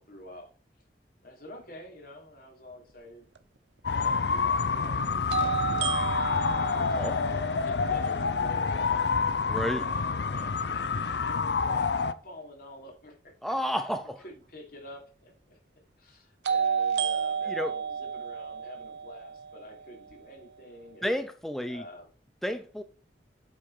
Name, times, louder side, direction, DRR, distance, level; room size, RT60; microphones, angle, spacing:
voice 1, 0.1-0.5 1.2-3.3 3.8-7.2 7.6-9.1 9.6-13.9 14.2-15.6 16.0-21.1 21.7-22.1, left 1 dB, 55° left, 2 dB, 3.0 m, -48 dB
sound 1, 3.4-3.5 5.3-9.2 16.5-20.5, right 7 dB, 75° right, 0.7 m, -32 dB
sound 2, 3.8-12.1, left 5 dB, 75° left, 0.6 m, -28 dB
voice 2, 9.5-9.9 13.4-14.2 17.5-17.7 21.0-21.8 22.4-22.8, equal, ahead, 8 dB, 0.5 m, -31 dB
8.5 x 5.5 x 4.8 m, 0.40 s
head